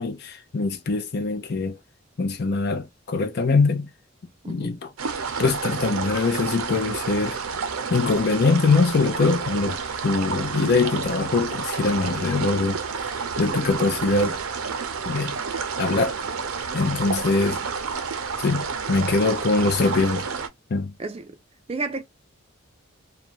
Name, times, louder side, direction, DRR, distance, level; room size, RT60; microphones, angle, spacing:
voice 1, 0.0-1.8 2.2-3.9 4.5-4.9 5.4-7.4 7.9-9.8 10.0-12.8 13.4-14.4 15.1-15.4 15.8-16.2 16.7-17.6 18.4-20.3 20.7-20.9, left 3 dB, 50° left, 0.5 m, -23 dB
sound 1, 5.0-20.5, right 5 dB, 90° right, 0.6 m, -30 dB
voice 2, 21.0-21.4 21.7-22.0, right 3 dB, 30° right, 0.4 m, -31 dB
2.4 x 2.2 x 2.8 m
head